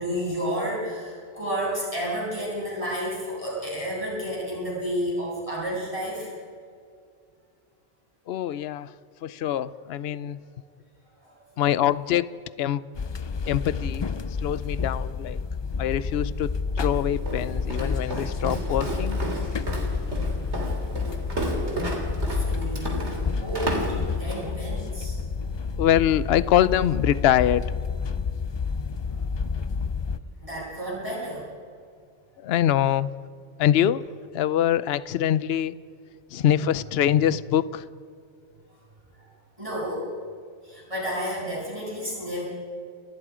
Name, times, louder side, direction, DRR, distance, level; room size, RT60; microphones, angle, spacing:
voice 1, 0.0-6.3 11.2-11.3 21.3-21.9 22.3-25.9 29.0-29.2 29.6-29.7 30.4-31.4 39.2-39.3 39.6-40.2 40.6-42.4, equal, 30° right, -6 dB, 7.9 m, -31 dB
voice 2, 8.3-8.9 9.2-10.4 11.6-12.3 12.6-12.8 13.5-14.0 14.4-15.4 15.8-16.5 16.8-19.2 25.8-27.7 32.4-33.1 33.6-34.0 34.3-35.7 36.3-37.8, left 11 dB, 65° left, 17 dB, 0.9 m, -24 dB
sound 1, 12.9-30.2, left 5 dB, 45° left, 0.3 m, -29 dB
Walk footsteps, 16.8-24.5, right 1 dB, 70° right, 3.8 m, -32 dB
29.5 x 20.0 x 5.0 m, 2.3 s
omnidirectional pair, 1.2 m